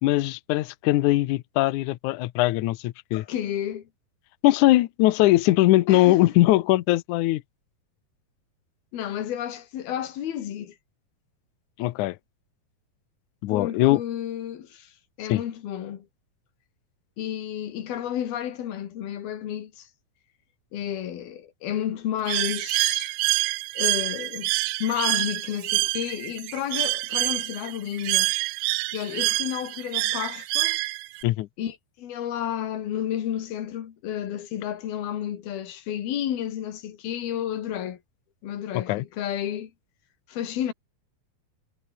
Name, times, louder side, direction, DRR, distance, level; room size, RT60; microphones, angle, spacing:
voice 1, 0.0-3.2 4.4-7.4 11.8-12.2 13.4-14.0 15.3-15.4 31.2-31.5 38.7-39.1, left 17 dB, 75° left, 1.9 m, -21 dB
voice 2, 3.1-3.9 5.9-6.2 8.9-10.8 13.5-14.9 15.2-16.1 17.2-19.9 20.7-23.2 23.8-24.5 24.8-28.3 28.9-30.8 31.6-38.0 38.4-39.7 40.3-40.7, left 10 dB, 90° left, 4.0 m, -31 dB
Bird, 22.3-31.2, right 21 dB, 80° right, 2.3 m, -26 dB
omnidirectional pair, 4.2 m